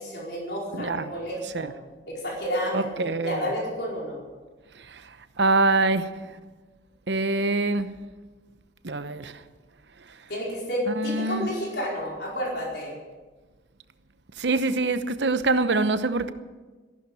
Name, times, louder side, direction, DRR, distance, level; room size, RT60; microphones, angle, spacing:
voice 1, 0.0-1.7 2.1-4.2 10.3-12.9, equal, 65° left, 4.8 m, -31 dB
voice 2, 0.7-1.1 1.5-1.7 2.7-3.4 5.4-6.1 7.1-7.9 8.8-9.3 11.0-11.5 14.4-16.3, right 3 dB, 75° right, 0.9 m, -24 dB
14.5 x 12.0 x 7.9 m
head